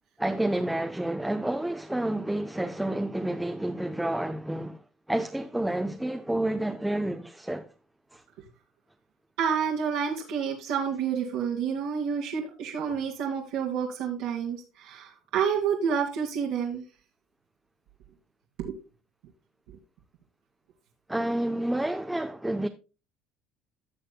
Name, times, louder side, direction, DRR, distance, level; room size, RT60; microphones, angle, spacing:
voice 1, 0.2-4.8 5.1-7.7 8.1-8.2 21.1-22.7, right 1 dB, 5° right, 0.7 m, -29 dB
voice 2, 9.4-16.8 18.6-18.8, right 7 dB, 80° right, 2.1 m, -29 dB
16.5 x 6.5 x 2.2 m
supercardioid pair, 95°, 0 cm